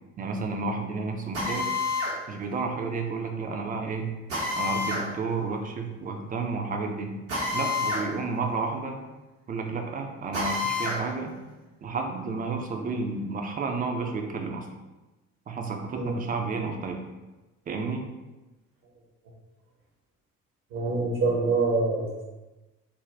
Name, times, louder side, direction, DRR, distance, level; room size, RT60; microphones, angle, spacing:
voice 1, 0.2-1.7 2.3-4.1 4.6-7.2 7.5-9.0 9.5-11.4 11.8-14.7 15.5-17.0 17.7-18.1, right 4 dB, 25° right, 3 dB, 0.4 m, -31 dB
Drill, 1.3-2.2 4.3-5.1 7.3-8.1 8.4-8.5 10.3-11.0, left 3 dB, 85° right, 0.9 m, -28 dB
voice 2, 20.7-22.2, right 3 dB, 60° right, -2 dB, 0.8 m, -25 dB
2.6 x 2.2 x 3.2 m, 1.1 s
figure-of-eight pair, 45°, 38 cm